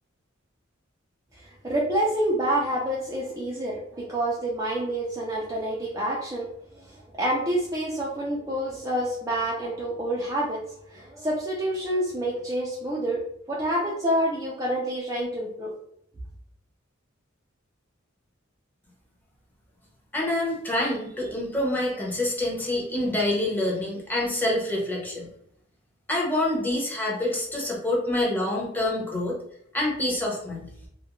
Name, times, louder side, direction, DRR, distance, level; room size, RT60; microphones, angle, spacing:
voice 1, 1.4-6.5 6.8-10.6 10.9-13.2 13.5-15.7, right 1 dB, 15° right, -4 dB, 0.4 m, -28 dB
voice 2, 20.1-25.3 26.1-29.4 29.7-30.7, left 1 dB, 10° left, -3 dB, 0.7 m, -26 dB
2.3 x 2.1 x 2.9 m, 0.74 s
head